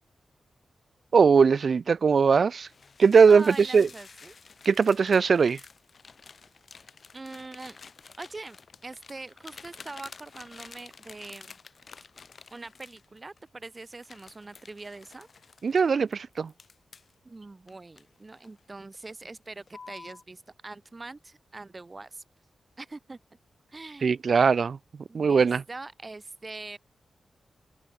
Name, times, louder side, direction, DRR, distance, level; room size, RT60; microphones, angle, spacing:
voice 1, 1.1-2.7 3.0-3.9 4.7-5.6 15.6-16.5 24.0-24.8 25.1-25.6, right 5 dB, 55° right, 0.6 m, -20 dB
sound 1, 2.7-13.4 13.9-17.1 17.7-18.6 18.9-19.2 19.7-20.2, left 5 dB, 45° left, 5.7 m, -50 dB
voice 2, 3.3-4.3 7.1-7.8 8.2-8.6 8.8-11.5 12.5-15.3 17.2-22.2 22.8-23.2 23.7-24.2 25.1-26.8, right 3 dB, 25° right, 3.6 m, -43 dB
open air
wide cardioid pair, 135°, 0 cm